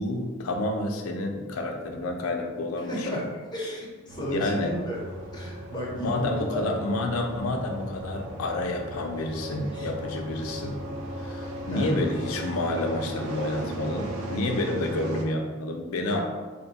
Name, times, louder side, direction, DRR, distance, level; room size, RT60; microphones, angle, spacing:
voice 1, 0.0-3.1 4.3-4.8 6.0-10.9 11.2-16.2, left 2 dB, 80° left, 3 dB, 0.5 m, -29 dB
voice 2, 2.8-5.0 5.3-6.7 9.7-9.9 11.7-11.9 16.1-16.2, equal, 20° left, -4 dB, 0.7 m, -33 dB
sound 1, 4.1-15.3, right 1 dB, 80° right, 0.4 m, -37 dB
2.7 x 2.2 x 3.9 m, 1.4 s
head